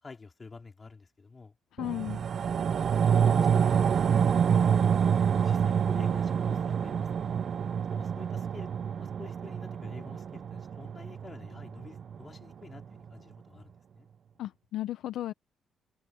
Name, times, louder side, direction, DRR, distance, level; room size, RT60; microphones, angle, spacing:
voice 1, 0.0-1.6 2.9-4.2 4.6-4.9 5.3-7.3 7.9-8.7 9.0-14.1, left 4 dB, 30° left, 4.0 m, -49 dB
voice 2, 1.8-2.2 14.4-15.3, left 14 dB, 80° left, 0.8 m, -34 dB
sound 1, 1.8-12.4 12.7-12.8, right 7 dB, 55° right, 0.8 m, -27 dB
cardioid pair, 90°, 0 cm